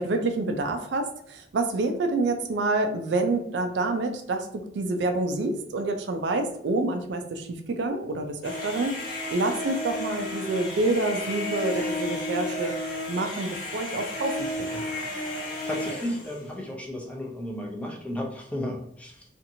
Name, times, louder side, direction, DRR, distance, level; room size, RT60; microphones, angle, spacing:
voice 1, 0.0-12.8 13.1-14.5 14.7-14.8, right 2 dB, 75° right, 5 dB, 0.4 m, -27 dB
sound 1, 8.4-16.4, left 1 dB, 55° left, 1.1 m, -33 dB
voice 2, 15.6-19.2, left 1 dB, 10° left, -1 dB, 0.5 m, -33 dB
2.8 x 2.5 x 2.6 m, 0.71 s
head